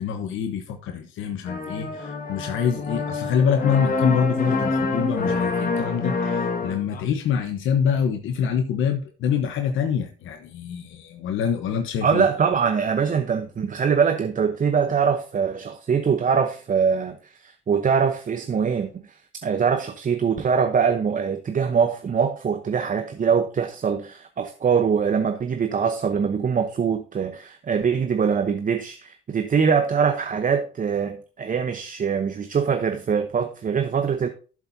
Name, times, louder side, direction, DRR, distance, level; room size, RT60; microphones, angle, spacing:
voice 1, 0.0-12.2, left 7 dB, 85° left, 1.1 m, -25 dB
sound 1, 1.5-7.0, left 3 dB, 45° left, 1.8 m, -26 dB
voice 2, 12.0-34.3, right 6 dB, 40° right, 0.9 m, -23 dB
12.0 x 7.2 x 2.7 m
cardioid pair, 90°, 20 cm